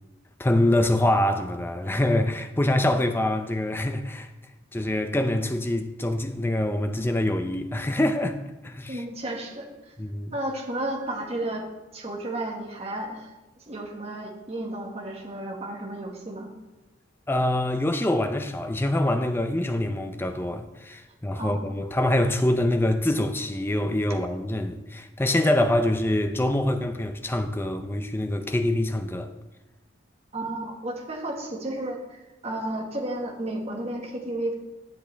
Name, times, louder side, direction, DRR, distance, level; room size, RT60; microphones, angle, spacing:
voice 1, 0.4-4.3 4.7-8.4 8.6-9.0 10.0-10.3 17.3-29.3, left 1 dB, 10° left, 0.5 m, -25 dB
voice 2, 8.9-9.9 10.3-11.6 11.9-13.3 13.7-16.5 21.4-21.7 30.3-34.5, right 1 dB, 30° right, 1.5 m, -32 dB
11.0 x 8.0 x 3.4 m
head